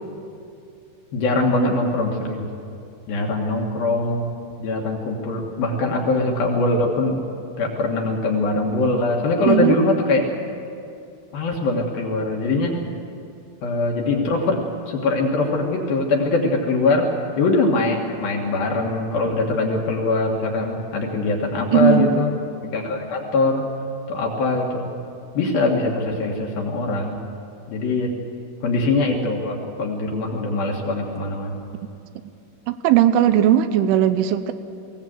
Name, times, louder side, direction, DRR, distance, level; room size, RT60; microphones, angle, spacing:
voice 1, 1.1-2.5 3.1-4.3 4.6-7.2 7.6-10.3 11.3-12.8 13.6-22.3 22.7-23.7 24.1-24.9 25.3-27.2 27.7-28.1 28.6-31.6, left 2 dB, 60° left, 0 dB, 2.9 m, -22 dB
voice 2, 9.5-9.8 21.7-22.1 32.7-34.5, right 11 dB, 80° right, 11 dB, 3.2 m, -17 dB
21.5 x 17.5 x 7.9 m, 2.5 s
omnidirectional pair, 5.7 m